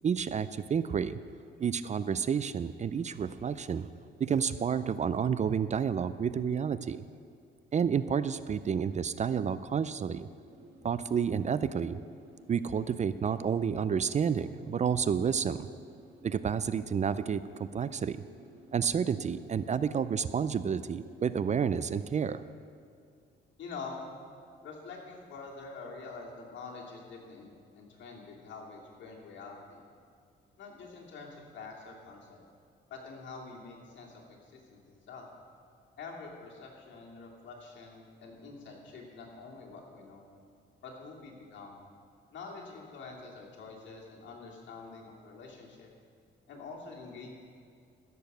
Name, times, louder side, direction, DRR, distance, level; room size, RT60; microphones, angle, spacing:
voice 1, 0.0-1.2 1.6-3.9 4.2-7.0 7.7-10.3 10.8-12.0 12.5-15.7 16.2-18.2 18.7-22.4, right 7 dB, 35° right, 14 dB, 0.4 m, -30 dB
sound 1, 10.5-22.3, right 3 dB, 75° right, 2.1 m, -55 dB
voice 2, 23.6-24.1 24.6-27.5 27.8-29.8 30.6-32.4 32.9-35.2 36.0-40.3 40.8-41.8 42.3-45.9 46.5-47.3, left 4 dB, 70° left, -2 dB, 2.6 m, -46 dB
15.5 x 6.9 x 6.7 m, 2.3 s
cardioid pair, 90°, 20 cm